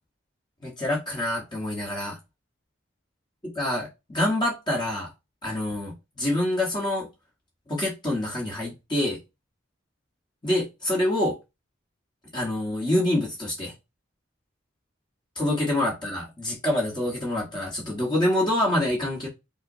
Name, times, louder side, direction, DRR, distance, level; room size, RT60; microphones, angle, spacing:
voice 1, 0.6-2.2 3.6-5.1 5.4-7.1 7.7-9.2 10.4-11.4 12.3-13.7 15.4-19.3, left 1 dB, 20° left, 1.2 m, -26 dB
5.3 x 2.0 x 2.6 m
head